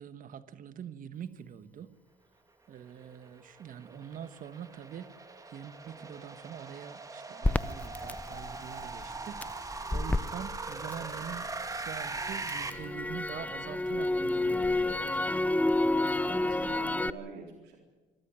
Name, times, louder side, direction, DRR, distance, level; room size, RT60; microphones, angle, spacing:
voice 1, 0.0-1.9 2.7-5.1 5.5-15.4, right 9 dB, 55° right, 13 dB, 1.4 m, -44 dB
sound 1, 3.1-12.7, right 3 dB, 20° right, 2.2 m, -40 dB
Crackle, 7.4-11.6 11.9-17.1, left 2 dB, 10° left, 0.6 m, -30 dB
voice 2, 16.2-17.8, right 5 dB, 85° right, 1 dB, 3.9 m, -45 dB
25.0 x 13.5 x 9.5 m, 1.2 s
cardioid pair, 110°, 17 cm